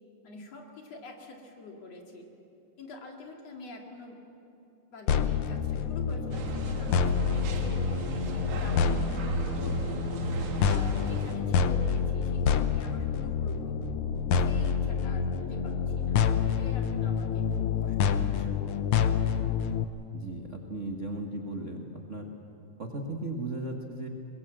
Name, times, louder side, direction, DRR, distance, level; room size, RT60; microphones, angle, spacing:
voice 1, 0.2-2.3 2.8-4.2 4.9-10.0 10.6-13.8 14.3-16.2 16.4-18.5, left 2 dB, 55° left, 1 dB, 3.3 m, -46 dB
sound 1, 5.1-19.8, left 6 dB, 80° left, 1.2 m, -28 dB
sound 2, 6.3-11.3, right 4 dB, 70° right, 2.9 m, -37 dB
voice 2, 20.1-21.8 22.1-22.3 22.8-24.1, right 2 dB, 50° right, 2 dB, 0.9 m, -36 dB
22.5 x 21.0 x 7.7 m, 2.8 s
omnidirectional pair, 3.6 m